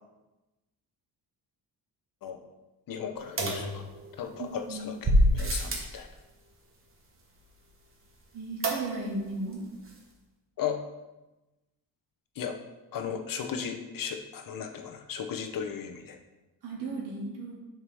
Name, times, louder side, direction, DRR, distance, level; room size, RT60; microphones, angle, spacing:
voice 1, 2.9-3.8 4.2-6.1 10.6-10.8 12.4-12.6 12.9-16.2, left 7 dB, 55° left, 5 dB, 0.8 m, -36 dB
sound 1, 3.4-4.4 5.0-6.0 8.6-9.2 9.5-9.6 9.9-10.0, equal, 35° right, 1.2 m, -26 dB
voice 2, 4.4-5.0 8.3-9.7 16.6-17.6, right 2 dB, 80° right, -3 dB, 2.2 m, -36 dB
7.2 x 5.8 x 3.4 m, 1.0 s
cardioid pair, 155°, 39 cm